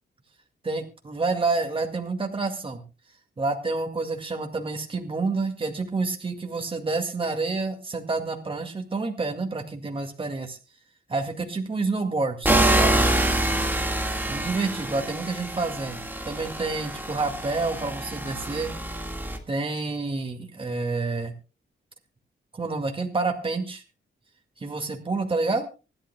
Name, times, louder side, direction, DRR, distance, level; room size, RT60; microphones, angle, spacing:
voice 1, 0.6-2.8 3.4-10.6 11.1-13.2 14.3-18.7 19.5-21.3 22.5-23.8 24.6-25.7, right 3 dB, 25° right, 3 dB, 2.0 m, -28 dB
sound 1, 12.5-19.4, right 1 dB, 10° right, 1.7 m, -26 dB
25.5 x 12.0 x 2.2 m, 0.32 s
wide cardioid pair, 160°, 20 cm